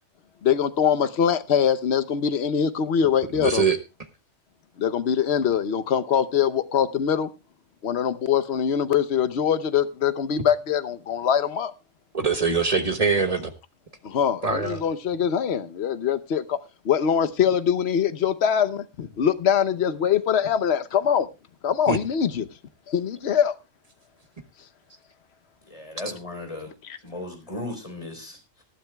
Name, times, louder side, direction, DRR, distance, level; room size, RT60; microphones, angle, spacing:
voice 1, 0.4-3.7 4.8-7.3 7.8-11.7 14.0-16.6 16.8-21.3 21.6-22.5 22.9-23.5, left 8 dB, 60° left, 1.1 m, -23 dB
voice 2, 3.3-3.8 12.1-13.5 14.4-14.8 21.9-22.0, right 5 dB, 30° right, 1.2 m, -23 dB
voice 3, 25.7-26.7 27.0-28.6, left 1 dB, 25° left, 4.1 m, -36 dB
19.5 x 12.0 x 2.3 m
omnidirectional pair, 1.3 m